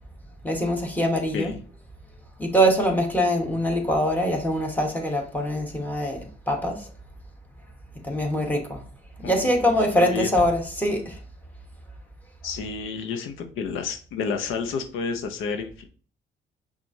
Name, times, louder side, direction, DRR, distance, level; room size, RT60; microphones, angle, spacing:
voice 1, 0.4-1.5 2.4-6.2 6.5-6.9 8.0-8.8 9.2-11.2, equal, 10° left, 1.1 m, -23 dB
voice 2, 9.2-10.5 12.4-15.9, left 5 dB, 90° left, 0.7 m, -31 dB
5.7 x 2.5 x 2.7 m
cardioid pair, 90°, 20 cm